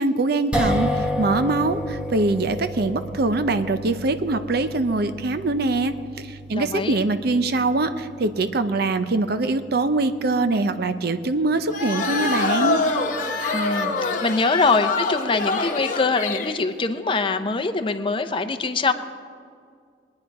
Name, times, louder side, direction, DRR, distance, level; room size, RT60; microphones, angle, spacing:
voice 1, 0.0-12.8, right 2 dB, 60° right, 10 dB, 0.7 m, -23 dB
sound 1, 0.5-12.8, equal, 5° right, 1.1 m, -32 dB
voice 2, 6.5-7.0 13.5-18.9, left 3 dB, 30° left, 8 dB, 0.7 m, -23 dB
sound 2, 11.7-16.6, left 3 dB, 45° left, 1.1 m, -25 dB
21.5 x 9.6 x 4.8 m, 2.1 s
head